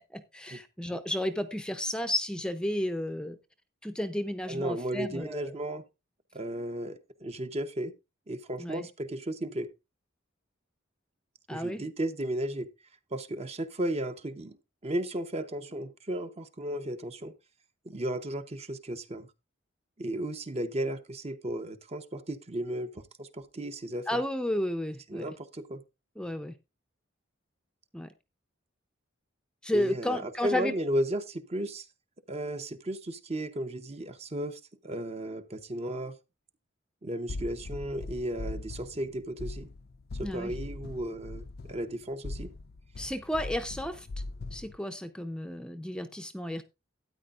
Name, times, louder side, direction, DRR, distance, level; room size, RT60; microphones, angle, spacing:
voice 1, 0.0-3.4 3.8-5.5 8.6-8.9 11.5-11.8 24.1-25.3 26.2-26.5 27.9-28.1 29.6-30.7 40.2-40.5 43.0-44.1 44.5-46.6, left 1 dB, 5° left, 0.6 m, -32 dB
voice 2, 4.5-5.8 6.3-7.9 8.3-9.7 11.5-12.7 13.1-14.6 14.8-17.3 17.8-19.3 20.0-24.2 25.1-25.8 29.7-31.9 32.3-36.1 37.0-39.7 40.2-42.5, right 1 dB, 30° right, 0.8 m, -34 dB
sound 1, 37.3-44.8, left 2 dB, 50° left, 0.5 m, -40 dB
13.0 x 9.5 x 2.5 m
head